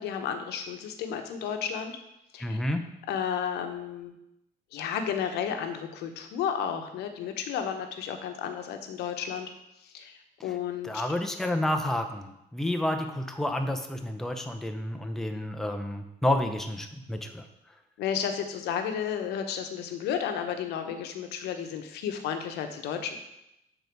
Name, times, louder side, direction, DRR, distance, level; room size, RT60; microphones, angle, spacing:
voice 1, 0.0-1.9 2.3-2.6 3.1-4.1 4.7-9.5 9.8-10.9 18.0-23.2, left 8 dB, 80° left, 6 dB, 0.9 m, -32 dB
voice 2, 2.4-2.8 10.8-17.4, left 1 dB, ahead, 5 dB, 0.6 m, -30 dB
6.8 x 4.0 x 4.6 m, 0.85 s
cardioid pair, 110°, 17 cm